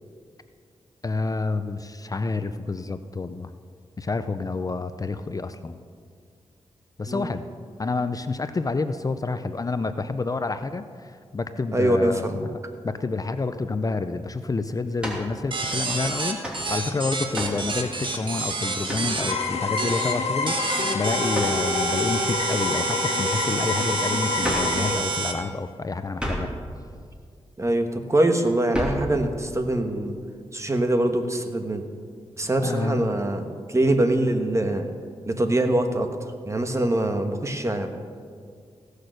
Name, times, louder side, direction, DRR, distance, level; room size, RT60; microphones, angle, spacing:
voice 1, 1.0-3.5 4.0-5.8 7.0-7.4 7.8-12.6 12.8-26.5 32.6-33.2, left 3 dB, 35° left, 10 dB, 0.5 m, -29 dB
voice 2, 11.7-12.4 27.6-30.2 30.5-31.8 32.4-34.9 35.3-36.1 36.5-37.9, right 1 dB, 25° right, 6 dB, 1.3 m, -23 dB
sound 1, 15.0-15.3 16.4-16.7 17.3-17.7 18.9-19.2 21.3-21.6 24.4-24.8 26.2-26.6 28.7-29.1, equal, 10° right, 2.9 m, -30 dB
sound 2, 15.5-19.3 19.8-20.1 20.5-25.3, right 3 dB, 50° right, 1.5 m, -28 dB
sound 3, 19.3-25.0, left 4 dB, 70° left, 1.5 m, -27 dB
16.5 x 6.6 x 6.4 m, 2.1 s
cardioid pair, 65°, 11 cm